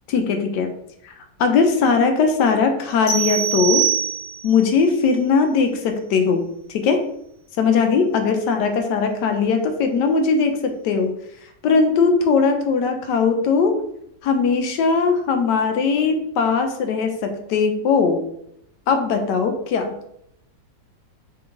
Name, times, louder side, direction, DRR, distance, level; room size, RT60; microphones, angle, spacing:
voice 1, 0.1-0.7 1.4-3.9 4.4-7.1 7.6-11.1 11.6-13.8 14.2-18.2 18.9-19.9, left 5 dB, 75° left, 6 dB, 1.1 m, -19 dB
sound 1, 3.1-4.6, right 9 dB, 50° left, 1.5 m, -22 dB
3.4 x 3.1 x 3.6 m, 0.76 s
omnidirectional pair, 2.0 m